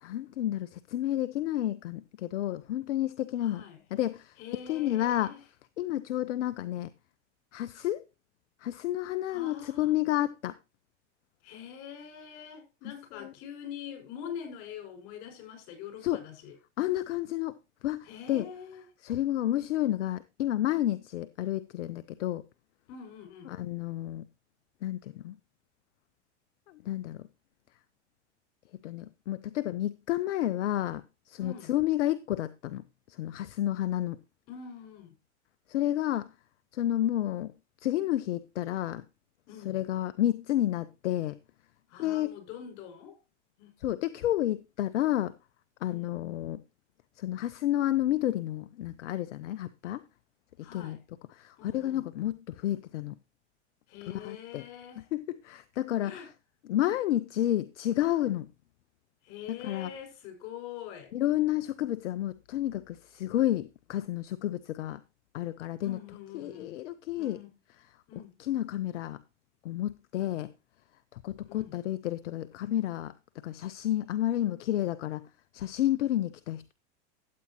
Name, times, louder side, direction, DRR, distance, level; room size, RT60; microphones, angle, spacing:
voice 1, 0.0-3.6 3.9-4.4 4.7-5.3 5.8-6.9 7.5-8.0 8.6-10.5 12.8-12.9 13.2-13.3 16.0-16.2 16.8-17.6 17.8-18.5 19.0-22.4 23.5-24.3 24.8-25.4 26.7-27.3 28.8-34.2 35.7-36.3 36.7-37.5 37.8-39.0 39.6-41.4 42.0-42.3 43.8-45.3 45.8-46.6 47.2-50.0 50.7-51.0 51.3-53.1 54.1-54.6 55.1-56.2 56.6-58.5 59.6-59.9 61.1-65.0 65.3-66.0 66.3-67.4 68.4-69.2 69.6-70.5 71.1-73.1 73.4-75.2 75.5-76.7, left 13 dB, 80° left, 0.6 m, -30 dB
voice 2, 3.4-3.8 4.4-5.4 9.3-10.0 11.4-16.6 18.0-18.9 22.9-23.6 31.4-31.7 34.5-35.2 39.5-39.8 41.9-43.2 43.6-43.8 45.9-46.1 50.6-51.0 51.6-52.1 53.9-55.0 56.0-56.3 59.2-61.1 65.8-66.8 67.2-67.6 68.1-68.4 71.5-71.7, left 8 dB, 55° left, 5.5 m, -44 dB
13.0 x 8.4 x 2.9 m
hypercardioid pair, 90°, 35 cm